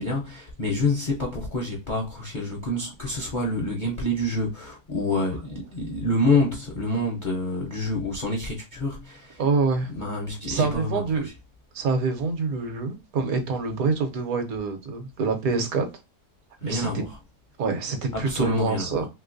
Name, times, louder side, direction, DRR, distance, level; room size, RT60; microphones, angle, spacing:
voice 1, 0.0-9.4 10.0-11.3 16.6-17.2 18.1-19.0, left 2 dB, 50° left, 0.5 m, -27 dB
voice 2, 9.4-9.9 10.5-11.3 11.7-15.9 16.6-17.0 17.6-19.1, right 4 dB, 70° right, 1.2 m, -26 dB
3.1 x 2.9 x 2.5 m
omnidirectional pair, 1.7 m